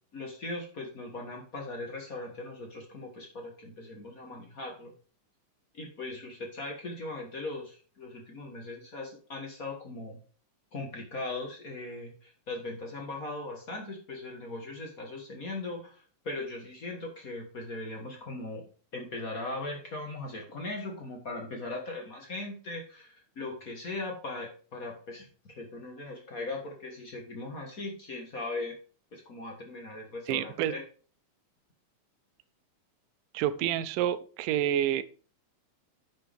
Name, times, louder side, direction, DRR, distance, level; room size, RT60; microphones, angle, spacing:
voice 1, 0.1-4.9 5.7-10.2 10.7-18.6 18.9-28.7 29.1-30.8, left 2 dB, 50° left, 1 dB, 1.0 m, -39 dB
voice 2, 30.3-30.7 33.3-35.0, right 11 dB, 90° right, 14 dB, 2.3 m, -28 dB
10.5 x 6.4 x 3.5 m, 0.40 s
omnidirectional pair, 3.7 m